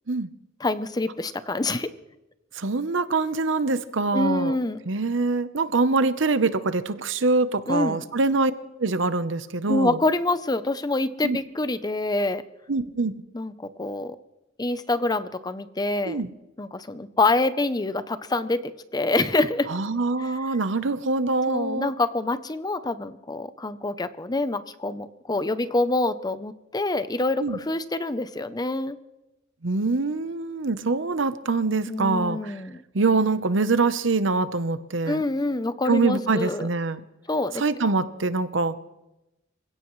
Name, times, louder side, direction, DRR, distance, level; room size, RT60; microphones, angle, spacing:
voice 1, 0.6-1.9 4.1-4.8 7.7-8.0 9.7-12.4 13.3-14.2 14.6-16.2 16.6-19.7 20.2-20.3 21.5-29.0 31.9-32.8 35.1-36.7 37.3-37.6, left 2 dB, 20° left, 12 dB, 0.6 m, -26 dB
voice 2, 2.5-4.6 4.9-8.5 8.8-10.0 11.2-11.4 12.7-13.1 16.0-16.3 19.7-21.9 27.4-27.6 29.6-32.6 32.9-35.2 35.9-37.0 37.6-38.7, right 3 dB, 70° right, 12 dB, 0.9 m, -24 dB
27.0 x 16.5 x 3.2 m, 0.97 s
head